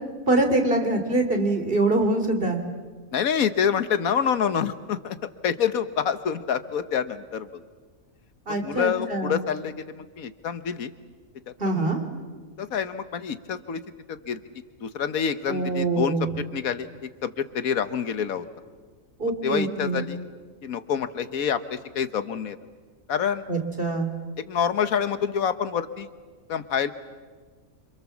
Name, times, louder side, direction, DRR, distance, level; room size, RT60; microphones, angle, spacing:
voice 1, 0.3-2.6 8.5-9.4 11.6-12.0 15.5-16.3 19.2-20.0 23.5-24.1, right 2 dB, 40° right, 5 dB, 3.3 m, -24 dB
voice 2, 3.1-5.2 5.4-7.5 8.5-10.9 11.5-11.9 12.6-13.8 14.1-14.4 14.8-16.9 17.2-18.4 19.4-20.2 20.6-22.6 23.1-23.4 24.5-26.1 26.5-26.9, left 7 dB, 90° left, 12 dB, 1.5 m, -27 dB
28.0 x 26.5 x 7.2 m, 1.5 s
omnidirectional pair, 1.4 m